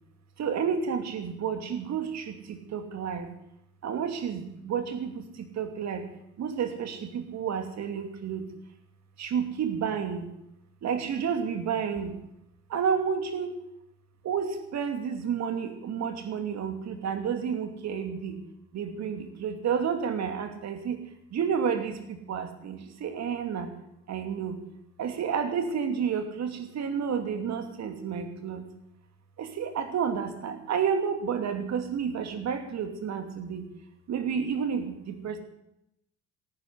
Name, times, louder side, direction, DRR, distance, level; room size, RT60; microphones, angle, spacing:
voice 1, 0.4-3.3 3.8-6.1 6.4-8.5 9.2-10.3 10.8-12.2 12.7-13.5 14.2-18.4 18.7-21.0 21.3-23.7 24.1-24.6 25.0-28.7 29.4-33.7 34.1-35.4, right 7 dB, 50° right, 7 dB, 2.6 m, -30 dB
17.5 x 9.8 x 8.0 m, 0.82 s
figure-of-eight pair, 55°, 35 cm